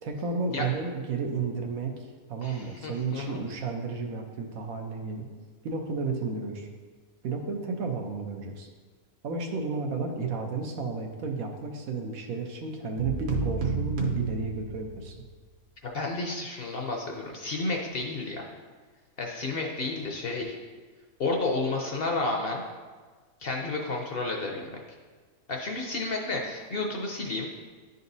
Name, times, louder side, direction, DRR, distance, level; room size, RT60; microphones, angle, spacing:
voice 1, 0.0-1.9 2.3-5.3 5.6-6.7 7.2-8.7 9.2-15.1, right 4 dB, 80° right, 2 dB, 1.2 m, -32 dB
voice 2, 2.4-3.4 15.8-18.5 19.2-20.6 21.2-22.6 23.4-24.8 25.5-27.6, left 3 dB, 55° left, 1 dB, 0.7 m, -31 dB
sound 1, 13.0-15.2, right 4 dB, 55° right, 1.1 m, -30 dB
10.5 x 4.0 x 2.6 m, 1.4 s
omnidirectional pair, 1.5 m